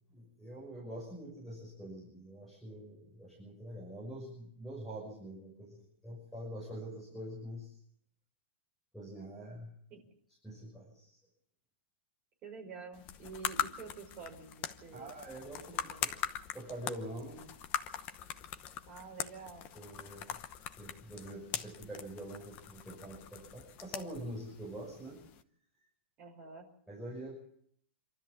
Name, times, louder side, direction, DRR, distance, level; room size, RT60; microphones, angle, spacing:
voice 1, 0.1-7.7 8.9-9.7 10.4-11.2 14.9-15.7 16.0-16.1 16.5-17.4 19.7-20.4 20.8-25.2 26.9-27.4, right 1 dB, ahead, -5 dB, 6.3 m, -45 dB
voice 2, 12.4-15.1 15.9-16.0 18.9-19.7 26.2-26.7, right 5 dB, 20° right, -1 dB, 5.3 m, -48 dB
sound 1, 12.9-25.4, left 10 dB, 25° left, 0.9 m, -42 dB
27.0 x 13.0 x 7.4 m, 0.68 s
supercardioid pair, 175°, 7 cm